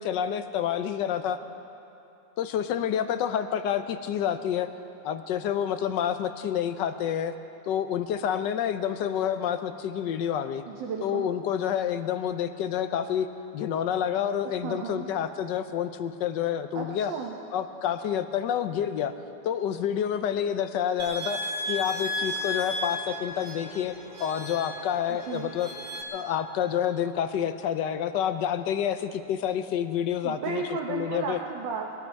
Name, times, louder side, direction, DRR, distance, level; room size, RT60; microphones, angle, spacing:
voice 1, 0.0-1.4 2.4-4.7 5.0-7.3 7.7-10.6 11.0-13.3 13.5-17.1 17.5-19.1 19.4-21.4 21.7-25.7 26.1-31.4, left 9 dB, 70° left, 10 dB, 1.3 m, -28 dB
voice 2, 10.7-11.3 14.6-15.1 16.7-17.3 25.3-25.5 30.2-31.9, right 5 dB, 75° right, 0 dB, 1.7 m, -33 dB
sound 1, 21.0-26.0, left 1 dB, 30° right, 2.1 m, -34 dB
22.0 x 13.5 x 4.6 m, 2.7 s
omnidirectional pair, 2.0 m